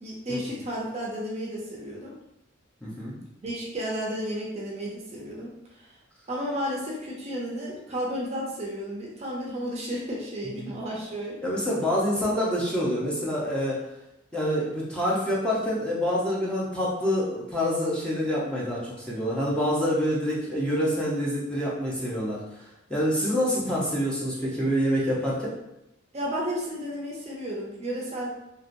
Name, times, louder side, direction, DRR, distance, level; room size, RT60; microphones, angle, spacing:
voice 1, 0.0-2.1 3.4-5.5 6.3-11.4 26.1-28.3, equal, 35° right, -3 dB, 0.6 m, -32 dB
voice 2, 2.8-3.2 10.5-10.7 11.4-13.8 14.3-25.5, equal, 5° left, -7 dB, 0.7 m, -27 dB
2.9 x 2.8 x 2.5 m, 0.86 s
head